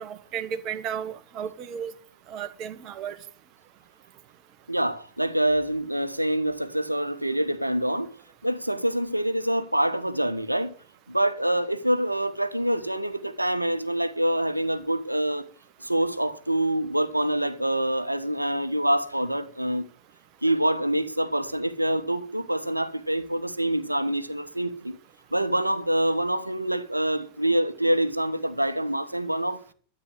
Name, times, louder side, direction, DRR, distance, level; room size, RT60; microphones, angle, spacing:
voice 1, 0.0-1.9 2.3-3.2, right 8 dB, 35° right, 1.6 m, -34 dB
voice 2, 4.7-8.1 8.4-10.7 11.1-15.5 15.8-19.9 20.4-25.0 25.3-29.6, right 1 dB, 85° right, 1.1 m, -26 dB
13.0 x 8.9 x 7.8 m
figure-of-eight pair, 90°, 0 cm